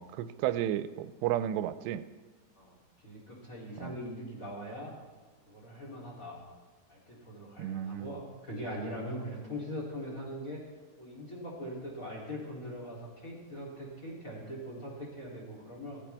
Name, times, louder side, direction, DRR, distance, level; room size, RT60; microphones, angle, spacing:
voice 1, 0.0-2.0 3.8-4.0 7.6-8.2, right 12 dB, 85° right, 13 dB, 2.7 m, -33 dB
voice 2, 3.0-5.0 5.5-6.4 6.9-10.6 11.0-16.0, equal, 20° left, -3 dB, 2.8 m, -41 dB
17.0 x 15.0 x 3.5 m, 1.3 s
omnidirectional pair, 4.9 m